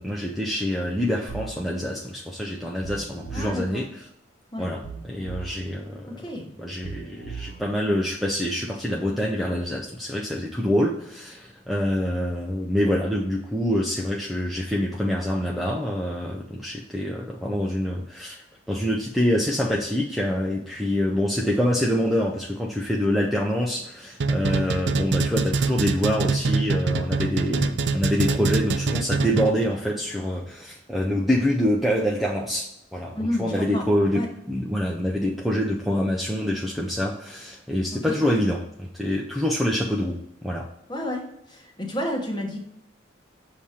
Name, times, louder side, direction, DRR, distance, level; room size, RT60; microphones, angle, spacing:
voice 1, 0.0-4.1 4.6-6.2 6.6-34.2 34.5-40.2 40.4-40.7, equal, ahead, -3 dB, 0.5 m, -26 dB
sound 1, 1.3-1.6 2.8-3.6 4.8-5.6 6.8-7.6, right 5 dB, 70° left, 1.1 m, -37 dB
voice 2, 3.3-3.8 4.5-4.6 6.1-6.4 33.1-33.9 34.1-34.3 37.9-38.2 40.9-41.2 41.5-42.6, left 1 dB, 20° left, 1 dB, 1.0 m, -30 dB
sound 2, 24.2-29.7, right 4 dB, 65° right, 0.4 m, -24 dB
7.0 x 2.8 x 4.8 m, 0.78 s
head